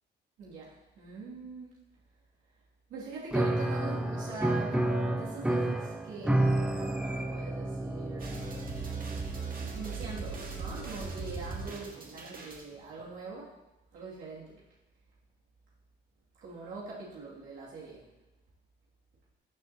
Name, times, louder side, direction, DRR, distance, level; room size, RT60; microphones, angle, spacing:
voice 1, 0.4-1.8 2.9-13.5 13.9-14.6 16.4-18.1, right 4 dB, 85° right, -7 dB, 2.6 m, -43 dB
Piano, 3.3-11.8, right 1 dB, 5° right, 0.9 m, -32 dB
sound 1, 8.2-12.6, right 5 dB, 45° right, 1.9 m, -39 dB
13.5 x 7.3 x 2.9 m, 0.99 s
cardioid pair, 90°, 20 cm